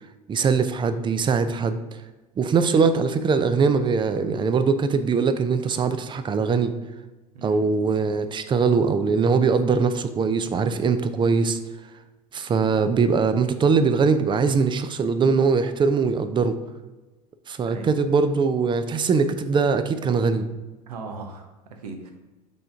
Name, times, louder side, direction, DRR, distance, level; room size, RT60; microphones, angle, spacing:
voice 1, 0.3-1.8 2.4-6.7 7.4-11.6 12.3-16.6 17.5-20.5, right 5 dB, 25° right, 10 dB, 0.5 m, -21 dB
voice 2, 20.9-22.1, right 4 dB, 75° right, 4 dB, 1.0 m, -38 dB
5.8 x 3.7 x 4.9 m, 1.2 s
figure-of-eight pair, 75°, 20 cm